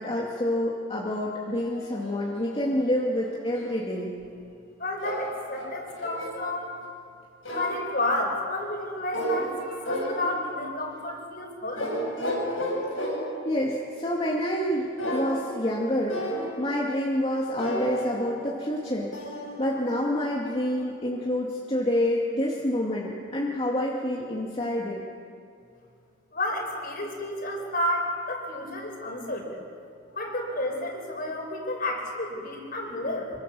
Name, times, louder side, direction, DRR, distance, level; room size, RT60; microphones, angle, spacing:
voice 1, 0.0-4.1 13.4-19.1 19.6-25.0, left 1 dB, 30° left, -4 dB, 2.4 m, -28 dB
sound 1, 1.6-3.8 5.0-6.4 7.4-7.9 9.1-9.6 9.8-10.6 11.8-13.5 15.0-15.8 16.1-16.7 17.6-20.2, equal, 90° left, 7.9 m, -33 dB
voice 2, 4.8-6.8 7.5-12.0 26.3-29.6 30.1-33.3, left 1 dB, 50° left, 1 dB, 5.2 m, -31 dB
26.0 x 24.5 x 7.1 m, 2.4 s
head